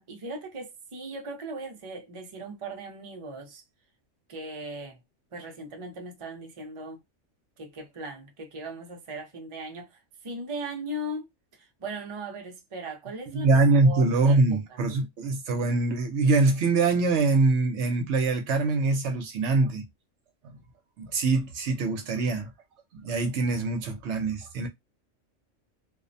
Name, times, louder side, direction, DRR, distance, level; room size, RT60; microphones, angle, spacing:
voice 1, 0.0-3.6 4.3-5.0 5.3-7.0 7.6-11.3 11.6-13.5 13.8-14.8, right 1 dB, 40° right, 0.5 m, -38 dB
voice 2, 13.3-19.8 21.0-22.5 22.9-24.7, right 3 dB, 70° right, 0.8 m, -24 dB
2.5 x 2.0 x 2.5 m
omnidirectional pair, 1.3 m